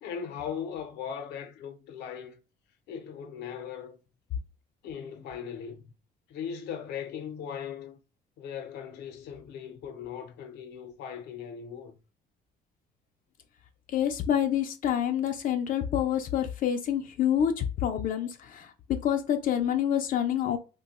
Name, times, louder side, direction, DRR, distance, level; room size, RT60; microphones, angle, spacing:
voice 1, 0.0-2.4 2.9-4.0 4.8-5.9 6.3-8.0 8.4-12.0, left 8 dB, 80° left, 0.8 m, -39 dB
voice 2, 13.9-20.6, left 9 dB, 55° left, 0.5 m, -27 dB
2.7 x 2.2 x 4.0 m
cardioid pair, 110°, 17 cm